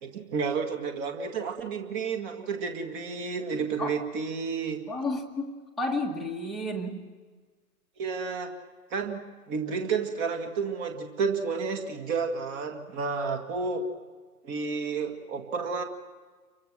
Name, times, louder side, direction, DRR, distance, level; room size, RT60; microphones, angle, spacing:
voice 1, 0.0-4.8 8.0-8.5 8.9-13.9 14.4-15.8, right 5 dB, 25° right, 4 dB, 1.9 m, -31 dB
voice 2, 4.9-7.0, left 2 dB, ahead, -2 dB, 1.4 m, -32 dB
29.5 x 24.0 x 6.3 m, 1.4 s
figure-of-eight pair, 125°, 46 cm